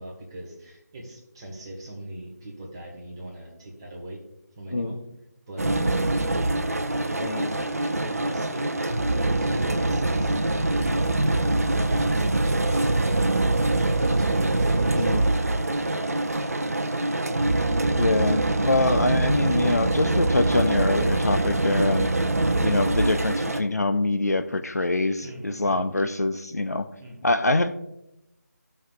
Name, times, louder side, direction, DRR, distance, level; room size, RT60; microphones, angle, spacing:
voice 1, 0.0-4.2 4.6-5.0 5.5-6.0 6.3-6.5 6.8-8.8 9.2-10.4 11.0-11.5 11.9-12.9 14.2-16.7 18.8-19.7 25.2-25.9 27.0-27.3, right 1 dB, 15° right, -2 dB, 1.5 m, -40 dB
sound 1, 5.6-23.6, right 2 dB, 60° right, 0.8 m, -24 dB
voice 2, 14.9-15.3 18.0-22.1 22.6-26.9 27.2-27.7, left 2 dB, 70° left, 9 dB, 0.6 m, -24 dB
16.0 x 5.7 x 2.3 m, 0.86 s
figure-of-eight pair, 160°, 9 cm